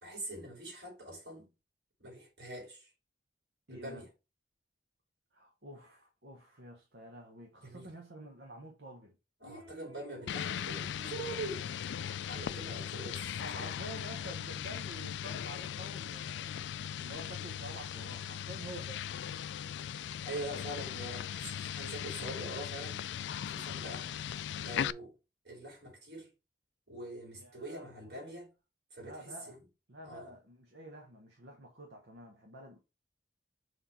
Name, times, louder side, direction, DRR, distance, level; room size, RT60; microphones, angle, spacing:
voice 1, 0.0-1.5 2.0-2.9 3.7-4.1 7.6-7.9 9.4-11.6 12.3-13.7 20.2-23.0 23.4-24.1 24.6-25.1 25.4-26.3 26.9-28.5 28.9-29.6 30.0-30.3, right 1 dB, 70° right, 4.3 m, -44 dB
voice 2, 3.7-4.0 5.3-9.2 9.4-10.8 12.7-12.9 13.3-16.6 17.0-19.0 27.4-28.4 29.0-29.6 29.9-32.8, right 1 dB, 85° right, 1.4 m, -49 dB
sound 1, 10.3-24.9, left 9 dB, 85° left, 0.3 m, -39 dB
6.4 x 3.7 x 4.5 m
head